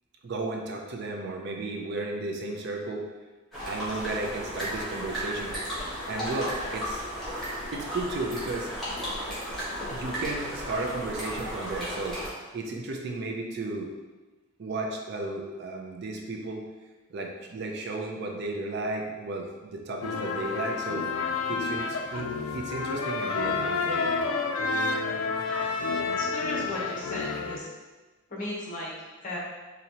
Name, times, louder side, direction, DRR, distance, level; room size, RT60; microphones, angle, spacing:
voice 1, 0.2-3.1 3.6-5.6 6.1-7.1 7.7-8.7 9.9-12.2 12.5-13.9 14.6-16.7 17.1-21.1 21.5-24.0, right 2 dB, 50° right, 2 dB, 0.4 m, -34 dB
sound 1, 3.5-12.3, equal, ahead, 1.0 m, -34 dB
sound 2, 20.0-27.6, left 4 dB, 75° left, 0.4 m, -30 dB
voice 2, 25.9-27.7 28.3-29.4, left 1 dB, 35° left, -4 dB, 0.9 m, -36 dB
4.1 x 2.7 x 2.8 m, 1.2 s
head